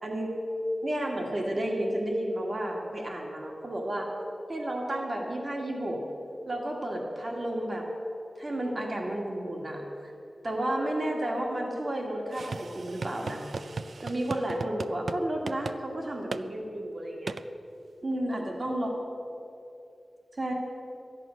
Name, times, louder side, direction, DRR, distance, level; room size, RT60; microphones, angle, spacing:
voice 1, 0.0-0.3 0.8-4.1 4.5-6.0 6.5-7.9 8.4-10.1 10.4-13.4 14.0-17.4 18.0-18.9 20.4-20.5, right 1 dB, 45° right, 0 dB, 1.9 m, -32 dB
sound 1, 12.3-15.2 15.5-15.8 16.3-16.4 17.3-17.4, right 4 dB, 75° right, 0.4 m, -36 dB
13.5 x 11.0 x 6.3 m, 2.8 s
wide cardioid pair, 80°, 0 cm